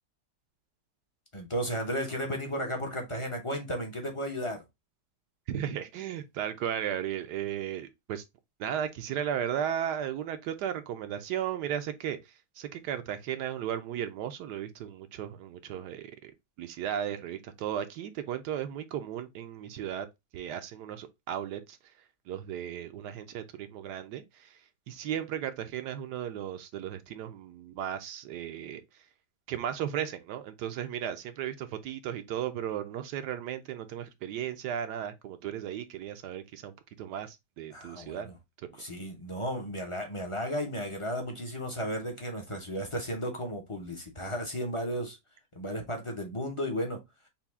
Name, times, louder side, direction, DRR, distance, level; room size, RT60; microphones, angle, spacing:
voice 1, 1.3-4.6 37.7-38.4 38.8-45.2 45.5-47.0, equal, 30° left, 0.5 m, -34 dB
voice 2, 5.5-8.2 8.6-16.3 16.6-20.1 20.3-21.8 22.3-24.6 24.9-28.8 29.5-38.3, right 9 dB, 75° right, 1.1 m, -35 dB
5.6 x 2.3 x 3.4 m
omnidirectional pair, 1.9 m